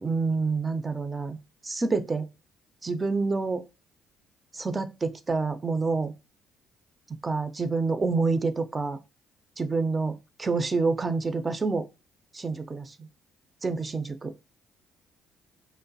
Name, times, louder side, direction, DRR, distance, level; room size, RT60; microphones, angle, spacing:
voice 1, 0.0-1.4 1.6-2.3 2.8-3.6 4.5-6.1 7.2-9.0 9.6-11.8 12.3-12.9 13.6-14.3, right 4 dB, 30° right, 0.4 m, -27 dB
3.0 x 2.0 x 2.7 m
hypercardioid pair, 50°, 0 cm